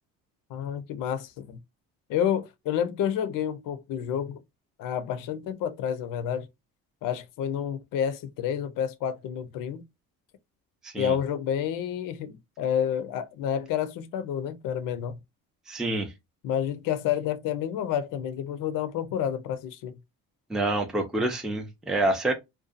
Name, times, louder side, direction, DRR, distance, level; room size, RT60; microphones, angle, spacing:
voice 1, 0.5-1.6 2.1-4.4 4.8-6.5 7.0-9.8 11.0-15.2 16.4-20.0, left 9 dB, 65° left, 0.6 m, -29 dB
voice 2, 10.8-11.2 15.7-16.1 20.5-22.3, right 2 dB, ahead, 0.5 m, -27 dB
2.6 x 2.3 x 2.4 m
supercardioid pair, 90°, 36 cm